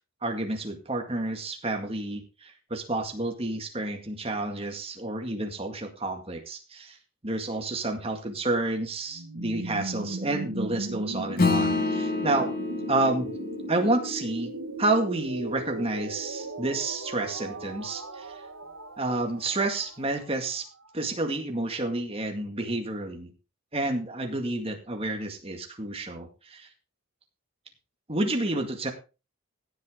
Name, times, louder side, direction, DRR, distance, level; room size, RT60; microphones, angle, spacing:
voice 1, 0.2-7.0 7.2-12.5 12.9-13.3 13.7-14.5 14.8-18.4 19.0-20.7 20.9-23.3 23.7-26.7 28.1-28.9, right 2 dB, 25° right, 4 dB, 2.0 m, -30 dB
sound 1, 9.1-20.9, right 2 dB, 80° right, 1.5 m, -38 dB
Acoustic guitar / Strum, 11.4-16.2, left 3 dB, 45° left, 2.0 m, -29 dB
17.0 x 8.1 x 3.7 m, 0.30 s
head